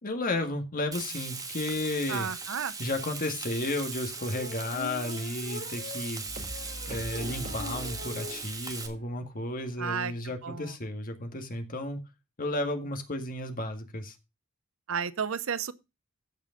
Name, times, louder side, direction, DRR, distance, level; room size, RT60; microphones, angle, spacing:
voice 1, 0.0-2.3 2.8-6.5 6.9-12.0 12.4-14.1, left 1 dB, 40° left, 1.7 m, -33 dB
Frying (food), 0.9-8.9, right 4 dB, 15° right, 1.6 m, -39 dB
voice 2, 2.1-2.7 9.8-10.1 10.4-10.7 14.9-15.7, right 7 dB, 70° right, 0.6 m, -32 dB
sound 1, 4.2-8.5 8.8-8.9 9.2-9.3 9.5-9.7, left 2 dB, 70° left, 3.5 m, -43 dB
sound 2, 6.2-9.0 9.4-9.5 9.9-10.0, equal, 40° right, 3.8 m, -42 dB
15.0 x 5.1 x 3.8 m
head